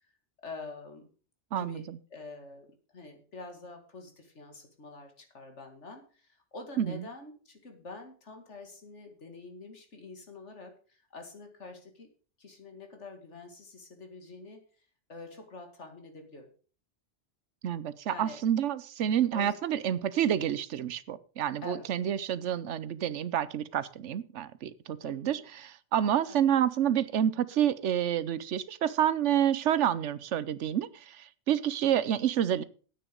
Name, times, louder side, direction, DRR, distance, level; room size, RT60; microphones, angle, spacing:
voice 1, 0.4-1.1 1.5-12.1 12.4-14.6 15.1-16.5 18.1-18.4 19.3-19.8 21.6-21.9 25.0-25.4 26.3-26.5, left 3 dB, 90° left, 5 dB, 2.5 m, -46 dB
voice 2, 1.5-2.0 6.8-7.0 17.6-32.6, right 10 dB, 90° right, 17 dB, 1.1 m, -29 dB
10.0 x 9.1 x 5.2 m, 0.39 s
omnidirectional pair, 1.2 m